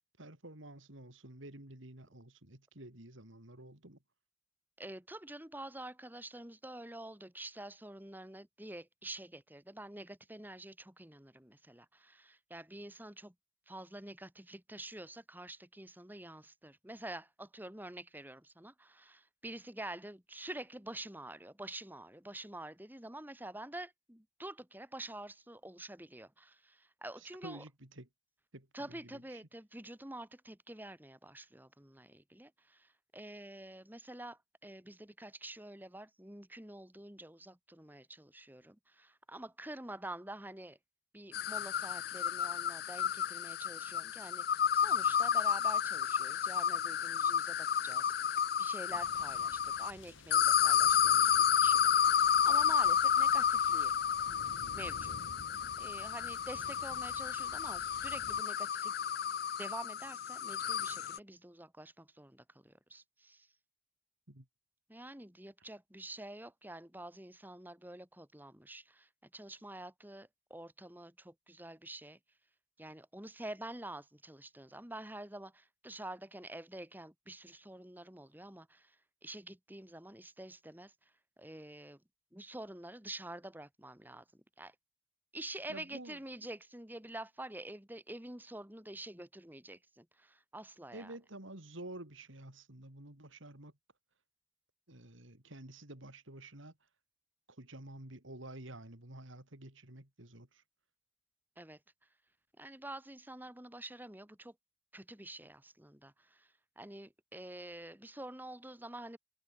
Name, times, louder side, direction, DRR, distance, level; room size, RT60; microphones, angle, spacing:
voice 1, 0.2-4.0 27.2-28.1 28.5-29.4 64.3-64.5 85.7-86.2 90.9-93.7 94.9-96.7 97.5-100.6, right 1 dB, 70° right, 3.7 m, -50 dB
voice 2, 4.8-13.3 13.7-27.6 28.7-40.8 41.1-54.0 54.7-55.2 55.8-58.9 59.6-63.5 64.9-72.2 72.8-82.0 82.3-84.7 85.3-91.1 101.6-101.8 102.6-104.5 104.9-109.2, right 1 dB, 10° right, 1.7 m, -48 dB
sound 1, 41.3-49.9 50.3-61.2, left 8 dB, 50° left, 0.4 m, -31 dB
sound 2, 48.9-58.4, left 2 dB, 70° left, 2.9 m, -54 dB
head